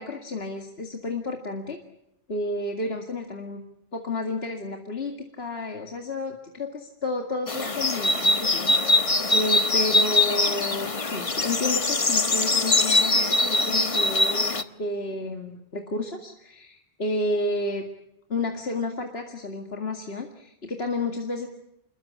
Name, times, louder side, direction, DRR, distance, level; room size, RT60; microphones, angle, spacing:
voice 1, 0.0-1.8 2.3-3.6 3.9-8.8 9.3-17.8 18.3-21.5, left 2 dB, 70° left, 3 dB, 2.4 m, -31 dB
sound 1, 7.5-14.6, left 2 dB, 30° left, 1.2 m, -22 dB
27.5 x 22.0 x 8.7 m, 0.82 s
omnidirectional pair, 1.1 m